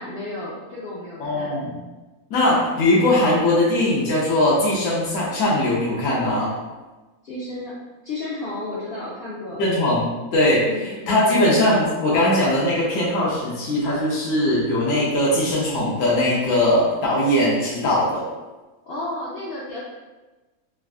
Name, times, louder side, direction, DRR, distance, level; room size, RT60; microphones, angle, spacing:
voice 1, 0.0-1.5 7.2-7.7 8.0-9.6 10.6-11.5 18.8-19.8, left 2 dB, 90° left, -7 dB, 0.5 m, -32 dB
voice 2, 1.2-1.8 2.3-6.5 9.6-18.2, left 1 dB, 65° left, -7 dB, 1.0 m, -20 dB
3.5 x 2.3 x 2.3 m, 1.2 s
omnidirectional pair, 1.6 m